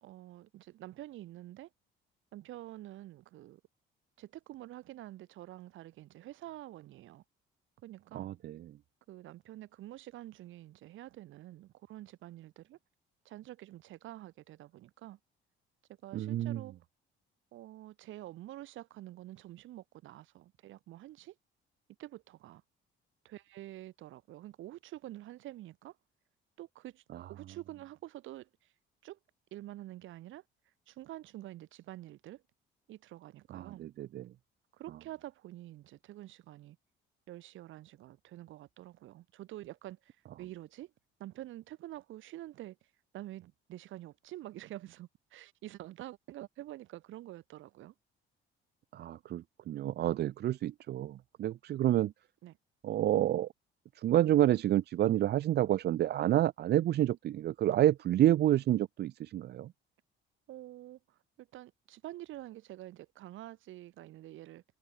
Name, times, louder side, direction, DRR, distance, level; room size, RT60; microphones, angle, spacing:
voice 1, 0.0-1.7 2.3-3.6 4.2-7.2 7.8-8.3 9.1-12.8 13.2-15.2 16.0-16.8 17.5-21.4 22.0-22.6 23.2-26.0 26.6-27.0 27.3-28.7 29.0-29.2 29.5-30.4 30.9-32.4 32.9-33.9 34.7-36.8 37.3-40.9 41.2-42.8 43.1-47.9 52.4-52.6 60.5-64.6, right 15 dB, 70° right, 2.1 m, -47 dB
voice 2, 8.1-8.7 16.1-16.6 33.5-34.2 48.9-52.1 52.8-53.5 54.0-59.7, right 13 dB, 55° right, 0.6 m, -29 dB
cardioid pair, 115°, 21 cm